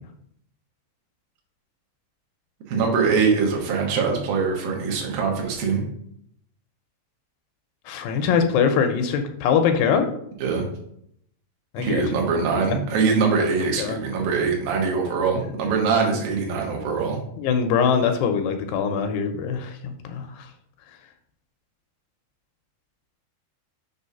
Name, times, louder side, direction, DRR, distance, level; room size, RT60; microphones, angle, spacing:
voice 1, 2.7-5.8 10.4-10.6 11.8-17.2, right 5 dB, 65° right, 0 dB, 2.8 m, -23 dB
voice 2, 7.9-10.1 11.7-12.0 12.7-12.8 13.4-13.5 13.8-14.0 17.4-20.3, left 6 dB, 80° left, 6 dB, 2.6 m, -22 dB
6.9 x 3.4 x 5.6 m, 0.71 s
omnidirectional pair, 4.9 m